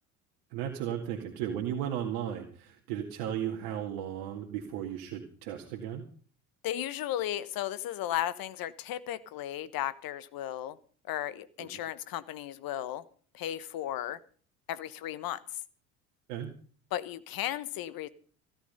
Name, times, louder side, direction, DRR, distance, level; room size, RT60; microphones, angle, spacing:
voice 1, 0.5-6.0 11.6-11.8 16.3-16.5, right 10 dB, 70° right, 1 dB, 2.2 m, -35 dB
voice 2, 6.6-10.8 11.1-13.0 13.3-14.2 14.7-15.4 16.9-18.1, left 12 dB, 50° left, 16 dB, 1.3 m, -35 dB
16.5 x 11.5 x 5.5 m, 0.43 s
hypercardioid pair, 65°, 44 cm